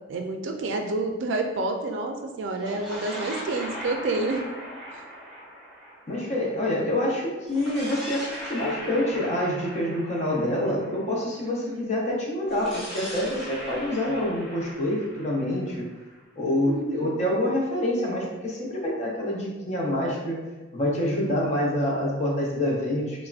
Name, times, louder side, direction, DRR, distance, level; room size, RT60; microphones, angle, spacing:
voice 1, 0.1-4.5 4.9-5.0 11.4-11.9 16.7-17.2, right 2 dB, 75° right, 3 dB, 0.4 m, -29 dB
sound 1, 2.5-6.9 7.5-11.4 12.5-16.3, equal, ahead, 0.9 m, -39 dB
voice 2, 6.1-15.8 16.4-20.4 20.7-23.3, left 1 dB, 35° left, -3 dB, 0.6 m, -26 dB
3.4 x 2.1 x 2.4 m, 1.2 s
head